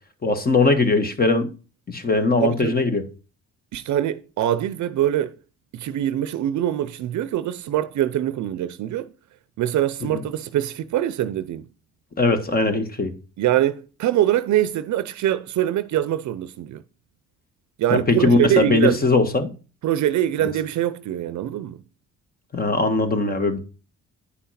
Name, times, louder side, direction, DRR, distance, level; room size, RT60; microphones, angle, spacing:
voice 1, 0.2-1.5 1.9-3.0 12.2-13.1 17.9-19.5 22.5-23.6, left 3 dB, 30° left, 1.6 m, -20 dB
voice 2, 2.4-2.8 3.7-5.4 5.7-9.1 9.6-11.7 13.4-16.8 17.8-19.0 19.8-21.8, right 12 dB, 70° right, 0.6 m, -23 dB
9.8 x 5.7 x 4.2 m
cardioid pair, 90°, 30 cm